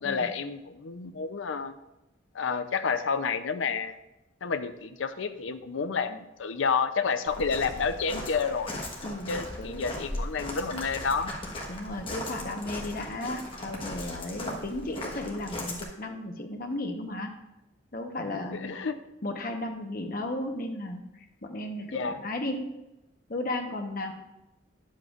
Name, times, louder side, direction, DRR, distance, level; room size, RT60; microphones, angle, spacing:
voice 1, 0.0-1.8 2.3-4.0 4.4-8.7 9.3-11.3 18.3-19.0 21.9-22.2, left 5 dB, 80° left, 10 dB, 0.6 m, -30 dB
Walk footsteps, 7.3-15.8, left 1 dB, 25° left, 1.3 m, -38 dB
voice 2, 9.0-9.9 11.7-17.3 17.9-18.8 19.2-22.7 23.3-24.1, left 1 dB, 45° left, 3 dB, 1.0 m, -35 dB
10.5 x 7.5 x 2.5 m, 0.93 s
head